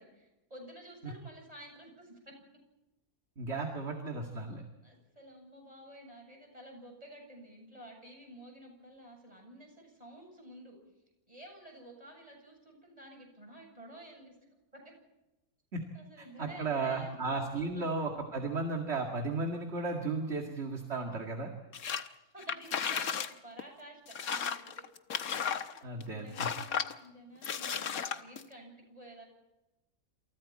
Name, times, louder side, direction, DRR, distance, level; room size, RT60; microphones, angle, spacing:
voice 1, 0.0-2.3 4.8-10.8 11.3-14.4 14.7-14.9 15.9-17.2 17.5-17.9 22.3-24.7 25.4-29.2, right 1 dB, 25° right, 1 dB, 7.9 m, -51 dB
voice 2, 3.4-4.6 15.7-15.8 16.2-21.5 25.8-26.5, right 3 dB, 45° right, 2 dB, 2.5 m, -35 dB
sound 1, 21.7-22.1 22.4-23.3 23.6-23.7 24.1-26.0 26.4-26.9 27.4-28.4, left 7 dB, 70° left, 1.6 m, -34 dB
28.5 x 28.0 x 4.3 m, 0.97 s
omnidirectional pair, 1.6 m